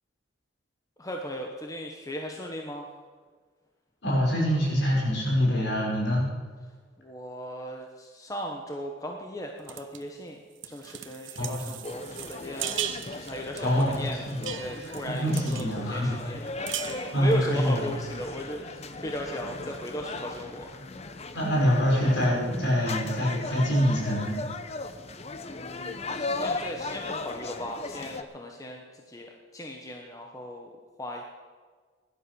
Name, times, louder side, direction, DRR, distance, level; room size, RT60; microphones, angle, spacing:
voice 1, 1.0-2.9 6.6-6.7 7.0-12.8 13.1-20.8 25.4-31.2, equal, 20° left, 1 dB, 1.1 m, -37 dB
voice 2, 4.0-6.3 11.4-11.6 13.6-14.5 15.1-16.2 17.1-17.8 21.3-24.4, equal, 60° left, -3 dB, 5.6 m, -25 dB
sound 1, 9.7-10.0 10.6-15.8 16.1-16.2 16.5-17.4, right 11 dB, 80° right, 1.0 m, -38 dB
sound 2, 11.8-28.2, left 3 dB, 35° left, 0.8 m, -37 dB
16.5 x 11.5 x 6.3 m, 1.5 s
head